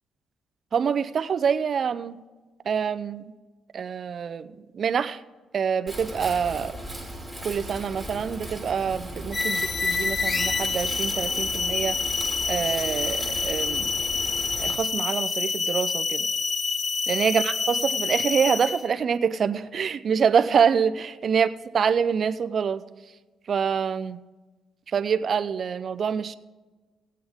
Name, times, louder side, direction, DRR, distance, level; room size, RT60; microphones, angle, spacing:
voice 1, 0.7-2.2 2.6-3.2 3.7-5.2 5.5-6.8 7.4-12.0 12.5-13.9 14.6-16.3 17.1-22.8 23.5-24.2 24.9-26.3, right 7 dB, 50° right, 13 dB, 0.6 m, -26 dB
Wind, 5.9-14.7, equal, ahead, 2.9 m, -37 dB
sound 1, 9.3-18.9, left 4 dB, 35° left, 0.4 m, -27 dB
17.5 x 8.5 x 3.6 m, 1.3 s
cardioid pair, 90°, 0 cm